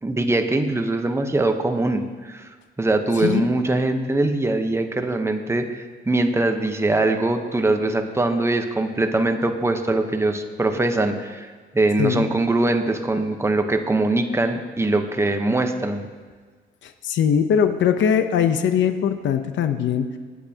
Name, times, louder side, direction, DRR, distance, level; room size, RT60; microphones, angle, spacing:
voice 1, 0.0-2.5 2.8-16.1, right 2 dB, 15° right, 6 dB, 0.9 m, -22 dB
voice 2, 16.8-20.2, left 8 dB, 70° left, 8 dB, 0.8 m, -21 dB
22.0 x 8.6 x 2.9 m, 1.4 s
cardioid pair, 90°, 20 cm